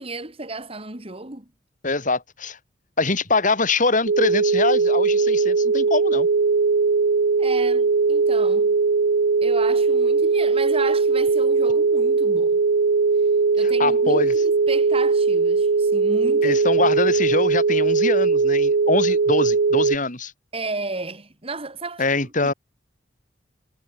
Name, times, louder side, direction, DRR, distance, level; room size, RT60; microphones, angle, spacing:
voice 1, 0.0-1.5 7.4-8.8 9.4-12.6 13.5-16.6 17.0-17.4 20.5-22.5, right 3 dB, 30° right, 3.5 m, -33 dB
voice 2, 1.8-2.6 3.0-6.3 13.6-14.3 16.4-20.3 22.0-22.5, left 3 dB, 45° left, 5.5 m, -23 dB
sound 1, 4.1-20.0, right 4 dB, 85° right, 0.6 m, -19 dB
head